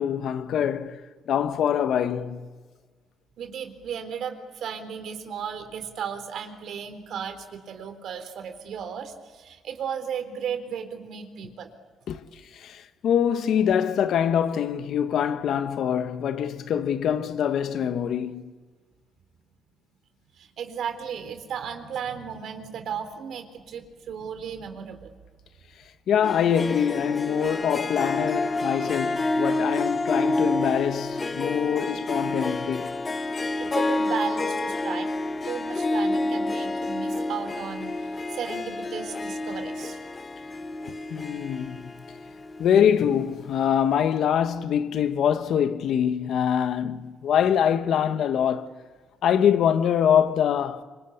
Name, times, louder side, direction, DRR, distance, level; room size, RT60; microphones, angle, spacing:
voice 1, 0.0-2.5 12.1-18.5 26.1-32.9 41.1-41.9 42.6-48.7 49.2-50.8, left 8 dB, 70° left, 1.4 m, -24 dB
voice 2, 3.4-11.7 20.4-25.1 33.6-35.1 35.4-40.0, right 7 dB, 70° right, 3.8 m, -35 dB
Harp, 26.2-43.0, left 2 dB, 30° left, 1.6 m, -29 dB
26.5 x 25.5 x 8.5 m
cardioid pair, 90°, 0 cm